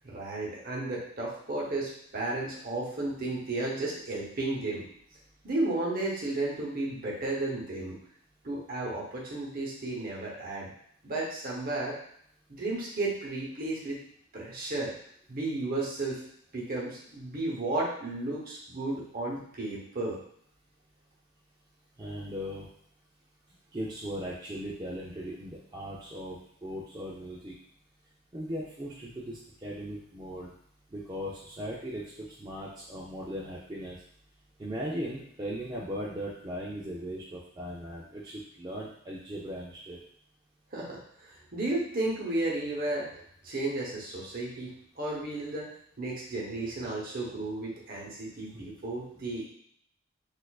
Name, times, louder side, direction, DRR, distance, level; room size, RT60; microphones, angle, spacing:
voice 1, 0.0-4.9 5.4-8.0 8.4-10.7 11.0-11.9 12.5-14.0 14.3-14.9 15.3-16.2 16.5-20.2 40.7-43.1 43.4-45.7 46.0-49.5, right 2 dB, 45° right, -3 dB, 0.9 m, -33 dB
voice 2, 22.0-22.7 23.7-27.5 28.3-30.5 30.9-34.0 34.6-40.0, equal, 20° right, -6 dB, 0.4 m, -38 dB
4.2 x 2.5 x 2.3 m, 0.66 s
head